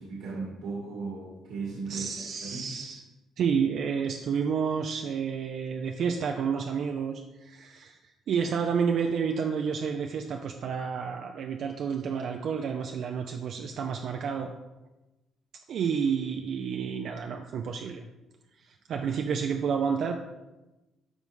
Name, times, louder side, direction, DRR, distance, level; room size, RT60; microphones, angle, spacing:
voice 1, 0.0-2.1 2.4-2.7, right 4 dB, 90° right, -5 dB, 2.4 m, -36 dB
voice 2, 1.9-3.0 3.4-8.0 8.3-14.5 15.7-18.0 18.6-20.2, right 6 dB, 60° right, 4 dB, 0.5 m, -30 dB
12.0 x 4.0 x 3.6 m, 1.1 s
cardioid pair, 110°, 0 cm